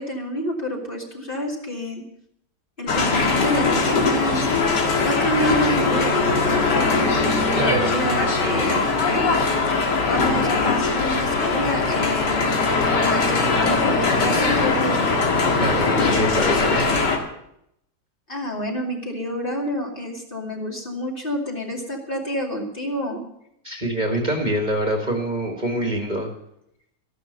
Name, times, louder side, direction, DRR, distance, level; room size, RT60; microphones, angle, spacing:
voice 1, 0.0-2.0 2.8-4.5 5.0-6.1 6.4-7.3 7.8-9.6 10.0-12.7 13.0-15.1 18.3-23.2, equal, 30° left, -1 dB, 2.8 m, -28 dB
sound 1, 2.9-17.2, left 3 dB, 80° left, 2.5 m, -21 dB
voice 2, 7.5-7.9 15.5-17.1 23.6-26.3, right 1 dB, 25° right, 2 dB, 2.0 m, -25 dB
14.5 x 11.0 x 6.7 m, 0.76 s
omnidirectional pair, 1.8 m